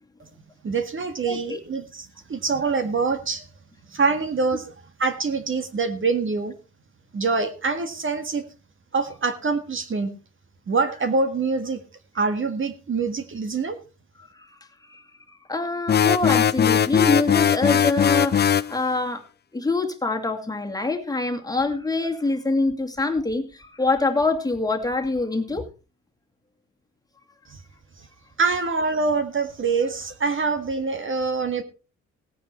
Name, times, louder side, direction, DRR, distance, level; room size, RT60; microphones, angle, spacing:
voice 1, 0.6-3.5 3.9-4.7 5.0-6.5 7.1-8.4 8.9-10.1 10.7-11.8 12.1-13.8 27.5-27.6 28.0-28.1 28.4-31.6, right 4 dB, 40° right, 9 dB, 1.8 m, -25 dB
voice 2, 1.3-1.6 14.3-14.5 14.9-15.0 15.3-19.2 19.5-25.7, left 3 dB, 10° left, 4 dB, 2.3 m, -25 dB
sound 1, 15.9-18.7, left 8 dB, 35° left, 0.6 m, -19 dB
17.0 x 9.4 x 4.4 m, 0.32 s
cardioid pair, 90°, 30 cm